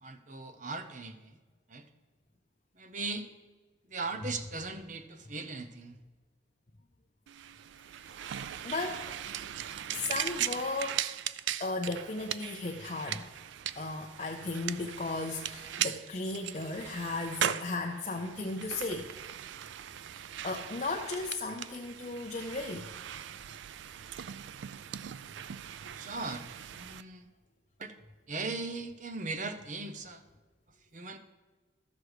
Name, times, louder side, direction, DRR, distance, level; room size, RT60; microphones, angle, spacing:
voice 1, 0.0-1.3 1.7-1.8 2.8-3.2 3.9-6.0 26.0-26.4 26.7-27.3 27.8-27.9 28.3-30.2 30.9-31.2, right 3 dB, 40° right, 8 dB, 0.7 m, -38 dB
sound 1, 7.3-27.0, right 10 dB, 75° right, 0.3 m, -39 dB
voice 2, 8.6-9.1 9.9-11.0 11.6-13.3 13.8-19.1 20.4-22.9, left 3 dB, 35° left, 1 dB, 0.6 m, -35 dB
13.5 x 6.4 x 4.8 m, 1.3 s
head